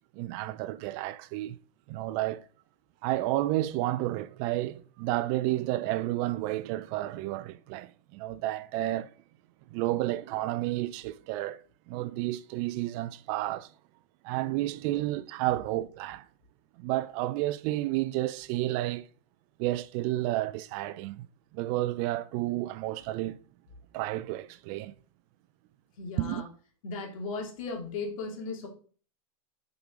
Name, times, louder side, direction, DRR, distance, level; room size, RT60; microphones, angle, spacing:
voice 1, 0.1-1.6 1.9-2.4 3.0-9.1 9.7-11.6 11.9-13.7 14.2-16.3 16.8-19.1 19.6-21.3 21.5-23.4 23.9-24.9 26.2-26.4, right 16 dB, 45° right, 0.4 m, -31 dB
voice 2, 26.0-26.5 26.8-28.7, left 3 dB, 70° left, 2.6 m, -36 dB
7.0 x 4.9 x 3.7 m
hypercardioid pair, 125°, 18 cm